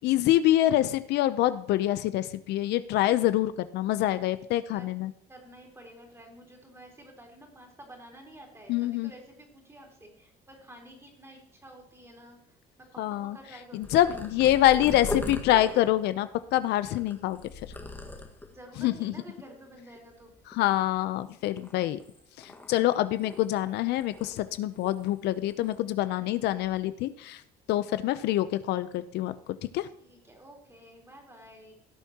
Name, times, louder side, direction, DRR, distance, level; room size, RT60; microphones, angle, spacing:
voice 1, 0.0-5.1 8.7-9.1 13.0-13.4 13.7-17.4 18.8-19.1 20.5-22.0 22.4-27.4 27.7-29.3 29.7-29.9, left 14 dB, 80° left, 13 dB, 0.6 m, -26 dB
voice 2, 5.3-14.3 18.5-20.3 30.0-31.7, right 1 dB, 15° right, 0 dB, 3.7 m, -50 dB
Purr, 13.8-18.7 19.2-19.7 20.0-21.2 21.6-23.6 23.9-25.2 25.5-25.8 26.5-26.8, left 2 dB, 10° left, 1.6 m, -40 dB
17.5 x 7.1 x 2.9 m, 0.74 s
cardioid pair, 110°, 17 cm